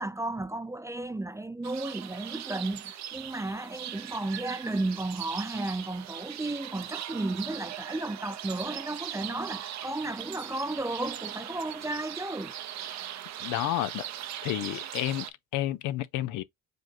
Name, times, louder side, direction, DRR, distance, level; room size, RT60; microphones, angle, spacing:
voice 1, 0.0-12.6, right 2 dB, 10° right, 0.4 m, -33 dB
sound 1, 1.6-15.3, right 11 dB, 65° right, 0.7 m, -40 dB
voice 2, 13.4-14.1 14.4-16.4, left 14 dB, 90° left, 0.6 m, -31 dB
5.1 x 2.1 x 4.2 m
cardioid pair, 90°, 30 cm